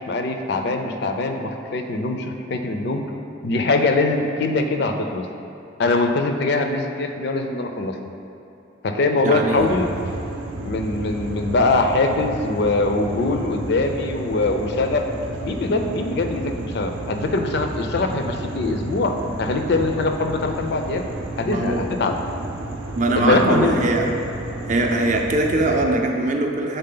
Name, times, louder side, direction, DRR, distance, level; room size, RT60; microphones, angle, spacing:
voice 1, 0.1-3.1 3.4-5.3 5.8-8.0 8.8-10.0 10.6-15.1 15.4-21.0 21.4-22.2 23.1-23.9, left 2 dB, 55° left, 5 dB, 0.4 m, -22 dB
voice 2, 9.2-9.7 21.5-21.8 23.0-24.1 24.7-26.8, right 2 dB, 40° right, 2 dB, 0.4 m, -21 dB
sound 1, 9.6-25.9, right 2 dB, 85° right, 0.6 m, -32 dB
6.6 x 4.0 x 3.8 m, 2.7 s
head